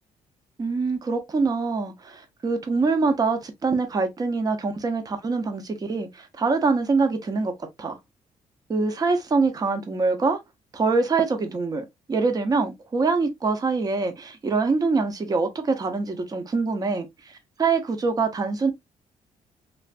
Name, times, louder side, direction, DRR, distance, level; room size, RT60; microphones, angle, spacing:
voice 1, 0.6-7.5 7.8-7.9 8.7-10.4 10.7-18.7, right 4 dB, 30° right, 0.7 m, -24 dB
3.3 x 2.5 x 2.4 m
cardioid pair, 120°, 13 cm